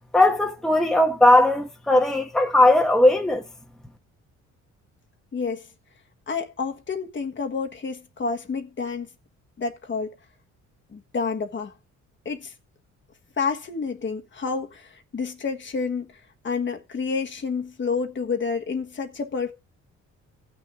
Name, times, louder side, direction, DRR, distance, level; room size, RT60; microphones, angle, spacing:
voice 1, 0.1-3.4, left 1 dB, ahead, 1.2 m, -18 dB
voice 2, 5.3-5.7 6.3-9.1 9.6-10.2 10.9-11.7 12.2-12.5 13.4-16.1 16.4-19.5, left 5 dB, 40° left, 1.4 m, -29 dB
15.5 x 6.4 x 3.7 m
cardioid pair, 90°, 30 cm